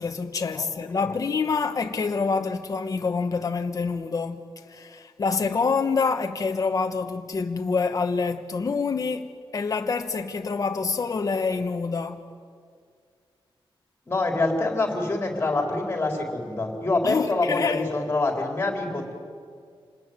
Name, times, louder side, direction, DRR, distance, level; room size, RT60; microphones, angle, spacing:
voice 1, 0.0-9.3 9.5-12.2 17.0-17.9, left 4 dB, 40° left, 1.2 m, -26 dB
voice 2, 0.5-1.2 14.1-19.1, left 2 dB, 20° left, 4.1 m, -26 dB
28.0 x 20.0 x 9.4 m
wide cardioid pair, 170°, 10 cm